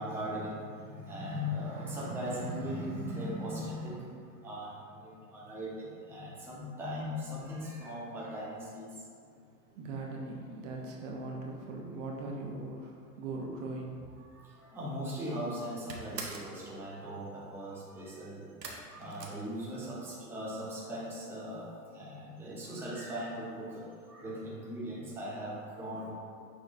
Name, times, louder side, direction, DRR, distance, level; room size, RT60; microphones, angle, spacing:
voice 1, 0.0-4.1 4.4-8.9 14.2-18.5 18.9-21.7 21.9-26.1, equal, 5° right, -7 dB, 0.7 m, -39 dB
voice 2, 9.3-14.1, right 2 dB, 50° right, -1 dB, 0.8 m, -40 dB
sound 1, 14.9-15.3 15.5-16.6 18.6-20.1 20.4-21.0 21.3-21.4 21.7-21.8, right 4 dB, 85° right, 0.7 m, -44 dB
5.9 x 3.0 x 2.4 m, 2.2 s
figure-of-eight pair, 95°, 48 cm